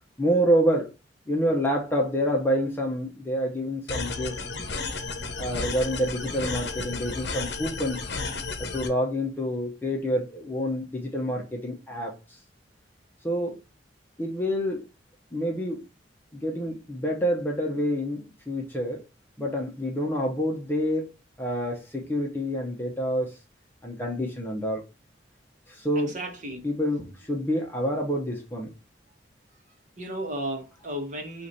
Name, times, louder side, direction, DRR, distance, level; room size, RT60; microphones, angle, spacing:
voice 1, 0.2-0.9 1.3-4.4 5.4-8.0 8.6-12.1 13.2-13.6 14.2-14.8 15.3-15.8 16.3-19.0 19.4-21.1 21.4-23.3 23.8-24.8 25.7-26.1 26.6-28.7, equal, 10° left, 0.8 m, -27 dB
sound 1, 3.9-8.9, left 3 dB, 60° left, 0.9 m, -33 dB
voice 2, 25.9-26.6 30.0-31.5, right 1 dB, 40° right, 1.2 m, -34 dB
4.8 x 2.6 x 4.0 m
head